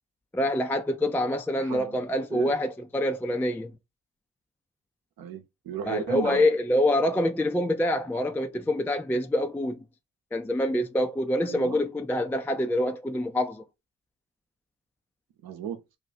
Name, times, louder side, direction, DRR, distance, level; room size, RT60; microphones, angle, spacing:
voice 1, 0.3-3.7 5.8-9.8 10.3-13.6, left 1 dB, 5° left, 0.4 m, -26 dB
voice 2, 1.6-2.0 2.3-2.6 5.2-6.5 11.4-11.8 15.4-15.8, right 8 dB, 65° right, 0.9 m, -35 dB
2.4 x 2.4 x 4.0 m
hypercardioid pair, 45°, 38 cm